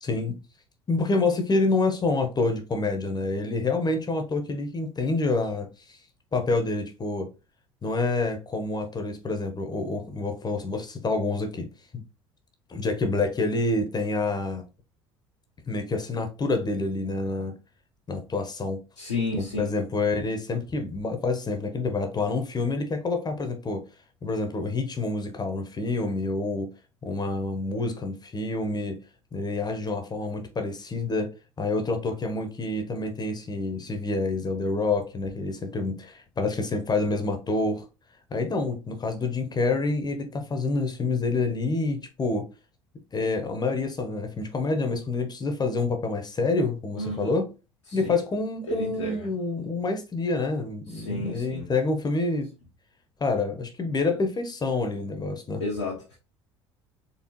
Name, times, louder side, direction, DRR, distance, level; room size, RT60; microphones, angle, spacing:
voice 1, 0.0-0.4 0.9-5.7 6.3-7.3 7.8-11.7 11.9-12.0 12.7-14.6 15.7-17.5 18.1-18.8 19.4-23.8 24.2-26.7 27.0-29.0 29.3-31.3 31.6-37.9 38.3-42.5 43.1-47.5 47.9-52.5 53.2-55.6, left 3 dB, 30° left, 0.9 m, -27 dB
voice 2, 19.0-19.7 47.0-47.3 47.9-48.2 48.7-49.3 50.9-51.7 55.6-56.2, left 2 dB, 90° left, 1.0 m, -32 dB
4.2 x 3.3 x 3.0 m
hypercardioid pair, 65°, 15 cm